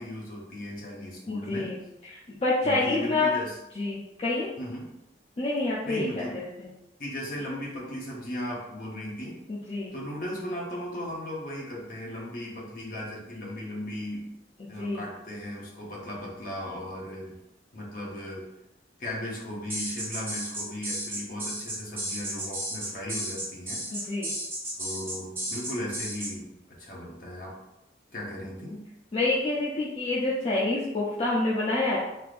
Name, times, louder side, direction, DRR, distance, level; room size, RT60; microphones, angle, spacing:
voice 1, 0.0-1.7 2.6-3.6 4.6-4.9 5.9-6.4 7.0-9.4 9.9-14.3 14.7-17.4 17.7-18.5 19.0-24.1 24.8-26.4 26.8-27.5 28.1-28.8, left 1 dB, 50° left, -3 dB, 0.8 m, -36 dB
voice 2, 1.3-1.8 2.1-3.3 3.8-4.5 5.4-6.7 9.5-9.9 14.6-15.0 23.9-24.3 29.1-32.0, left 2 dB, 35° left, -6 dB, 0.4 m, -28 dB
sound 1, 19.7-26.3, right 1 dB, 10° right, 0.8 m, -33 dB
3.3 x 2.6 x 2.5 m, 0.92 s
head